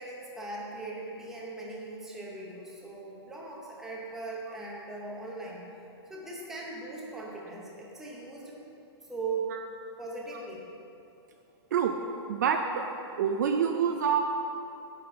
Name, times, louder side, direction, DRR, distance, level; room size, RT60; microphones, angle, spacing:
voice 1, 0.0-5.6 6.1-8.6 9.1-9.6 10.0-10.6, right 3 dB, 5° right, -4 dB, 0.7 m, -39 dB
voice 2, 12.3-12.9 13.2-14.3, right 7 dB, 40° right, 5 dB, 0.4 m, -27 dB
10.0 x 4.1 x 6.7 m, 2.9 s
hypercardioid pair, 180°, 14 cm